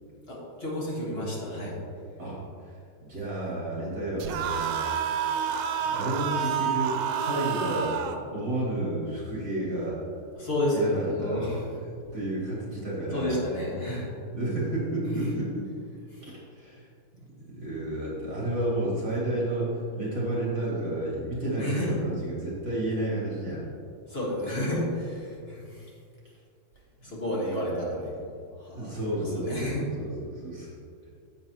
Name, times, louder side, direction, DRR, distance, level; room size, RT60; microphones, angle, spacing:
voice 1, 0.3-1.8 10.3-11.6 13.1-14.1 15.0-15.4 16.1-16.2 21.6-22.0 24.1-25.9 27.0-29.8, left 1 dB, 30° left, -5 dB, 1.7 m, -31 dB
voice 2, 2.2-5.2 5.8-8.0 8.3-10.0 10.7-13.4 14.3-15.5 16.2-16.9 17.1-23.6 27.5-27.9 28.7-30.7, right 1 dB, 50° right, -7 dB, 3.0 m, -31 dB
sound 1, 4.2-8.2, right 8 dB, 90° right, 1.5 m, -29 dB
10.5 x 7.8 x 3.0 m, 2.3 s
omnidirectional pair, 2.2 m